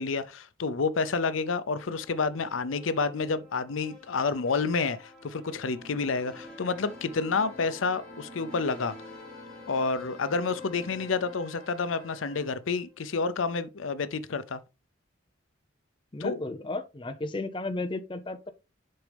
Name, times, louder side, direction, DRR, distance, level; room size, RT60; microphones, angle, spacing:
voice 1, 0.0-8.9 9.7-14.6 16.2-16.4, left 4 dB, 85° left, 0.6 m, -29 dB
sound 1, 1.8-13.0, left 3 dB, 5° left, 4.1 m, -50 dB
sound 2, 5.6-11.3, right 2 dB, 20° right, 0.8 m, -51 dB
Wind instrument woodwind instrument, 6.4-12.5, left 5 dB, 60° left, 3.1 m, -52 dB
voice 2, 16.1-18.5, left 2 dB, 25° left, 0.6 m, -34 dB
7.6 x 5.1 x 3.4 m
head